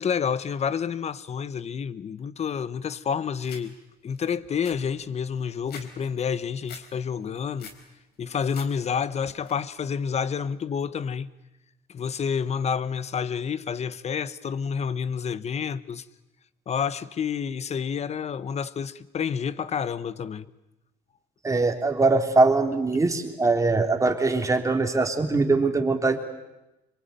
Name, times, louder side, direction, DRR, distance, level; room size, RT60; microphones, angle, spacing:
voice 1, 0.0-3.7 4.0-7.7 8.2-11.3 11.9-16.0 16.7-20.5, left 7 dB, 40° left, 1.1 m, -29 dB
sound 1, 3.4-3.6 4.1-4.2 4.4-5.9 6.2-6.8 7.2-7.8 8.2-8.7 9.0-9.5, left 6 dB, 70° left, 4.2 m, -44 dB
voice 2, 21.4-26.2, right 3 dB, 20° right, 3.3 m, -22 dB
26.5 x 23.0 x 9.2 m
cardioid pair, 110°, 17 cm